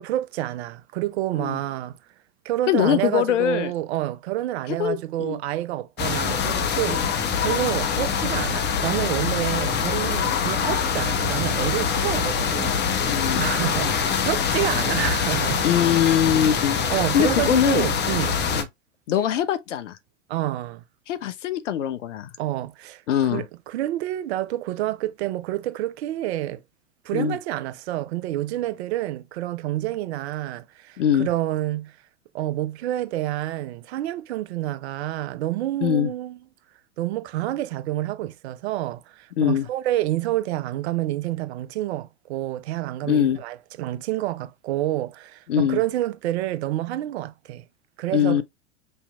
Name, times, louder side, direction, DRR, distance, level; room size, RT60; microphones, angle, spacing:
voice 1, 0.0-2.0 2.4-7.0 7.4-15.7 16.9-18.4 20.3-20.8 22.4-23.0 23.3-26.6 27.0-31.9 32.3-36.4 37.0-47.7 48.0-48.4, right 15 dB, 60° right, 0.6 m, -28 dB
voice 2, 2.7-3.7 4.8-5.4 6.9-7.0 13.1-13.5 15.6-16.8 17.1-17.9 18.5-18.7 19.1-20.0 21.1-22.3 23.1-23.4 27.1-27.4 31.0-31.3 35.8-36.1 39.4-39.7 43.0-43.4 45.5-45.8 48.1-48.4, left 10 dB, 75° left, 0.8 m, -22 dB
sound 1, 6.0-18.6, left 6 dB, 30° left, 0.9 m, -24 dB
5.6 x 2.8 x 2.3 m
hypercardioid pair, 90°, 37 cm